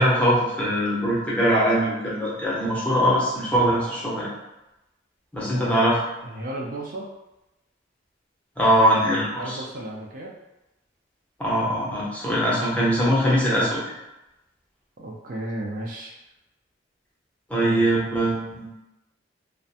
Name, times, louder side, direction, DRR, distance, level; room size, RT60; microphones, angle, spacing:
voice 1, 0.0-4.3 5.3-6.0 8.6-9.6 11.4-13.9 17.5-18.7, equal, 10° left, -7 dB, 0.6 m, -22 dB
voice 2, 5.4-5.9 6.2-7.1 9.3-10.3 15.0-16.2 17.6-18.0, right 1 dB, 50° right, -2 dB, 0.4 m, -34 dB
2.4 x 2.1 x 2.7 m, 0.95 s
head